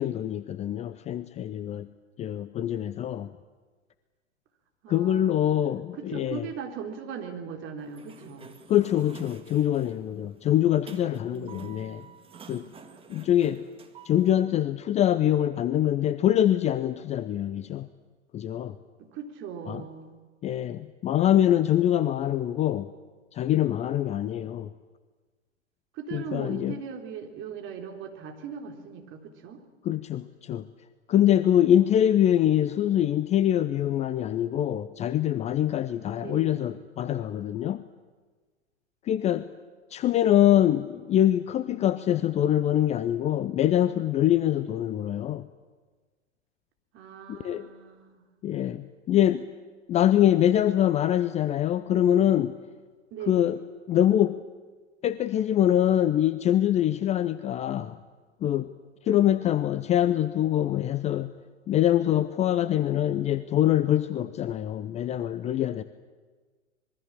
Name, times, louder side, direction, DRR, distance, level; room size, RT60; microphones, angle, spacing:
voice 1, 0.0-1.9 2.2-3.3 4.9-6.5 8.7-12.1 12.5-12.7 13.1-13.6 14.0-17.9 18.3-18.8 19.7-19.8 20.4-22.9 23.3-24.7 26.1-26.8 29.8-30.7 31.1-37.8 39.0-39.5 39.9-45.4 47.3-47.7 48.4-49.5 49.9-52.6 53.3-53.6 53.9-54.4 55.0-58.0 58.4-58.7 59.0-61.3 61.7-65.8, left 11 dB, 20° left, 14 dB, 0.7 m, -24 dB
voice 2, 4.8-5.2 6.0-8.6 11.2-11.7 19.0-20.2 25.9-29.6 36.1-36.7 46.9-48.3 53.1-53.6, right 7 dB, 35° right, 4 dB, 3.9 m, -39 dB
Sliding door, 7.8-14.3, right 5 dB, 15° right, 2.1 m, -49 dB
25.5 x 22.0 x 7.5 m, 1.4 s
figure-of-eight pair, 105°, 35 cm